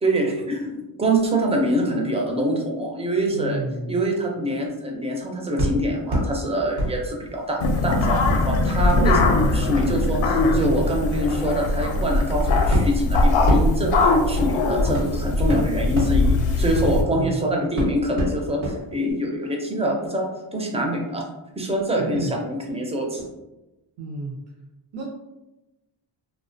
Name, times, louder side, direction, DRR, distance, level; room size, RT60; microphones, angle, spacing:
voice 1, 0.0-3.6 3.9-13.9 14.3-21.2 21.6-23.3, right 1 dB, 15° right, 0 dB, 0.4 m, -25 dB
voice 2, 3.3-4.0 17.1-17.5 22.0-22.3 24.0-24.4 24.9-25.0, right 2 dB, 65° right, -2 dB, 0.5 m, -31 dB
sound 1, 5.6-6.3 6.8-7.7 8.2-17.3 17.8-18.8 19.1-19.2, right 1 dB, 85° right, 1.0 m, -28 dB
sound 2, 7.6-17.0, left 2 dB, 65° left, 0.5 m, -21 dB
2.3 x 2.1 x 2.5 m, 0.98 s
cardioid pair, 105°, 49 cm